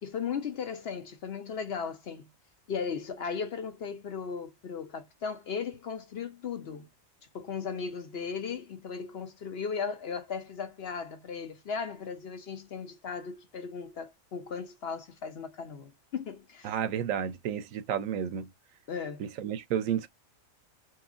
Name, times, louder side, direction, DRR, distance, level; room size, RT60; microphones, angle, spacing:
voice 1, 0.0-2.3 2.7-6.9 7.3-16.7 18.9-19.2, left 6 dB, 60° left, 0.8 m, -36 dB
voice 2, 16.6-18.5 19.2-20.1, right 9 dB, 80° right, 1.0 m, -31 dB
3.0 x 2.9 x 2.4 m
omnidirectional pair, 1.4 m